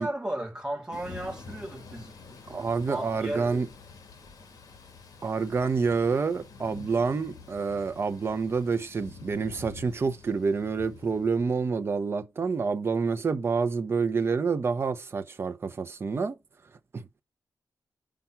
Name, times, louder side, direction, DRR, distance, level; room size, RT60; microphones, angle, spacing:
voice 1, 0.0-2.2 2.4-3.7, right 1 dB, 10° right, 2.9 m, -35 dB
Thunder / Rain, 0.9-11.7, left 4 dB, 65° left, 2.1 m, -48 dB
voice 2, 2.5-3.7 5.2-16.4 16.9-17.1, right 5 dB, 40° right, 0.9 m, -28 dB
6.0 x 5.2 x 5.7 m
wide cardioid pair, 140°, 7 cm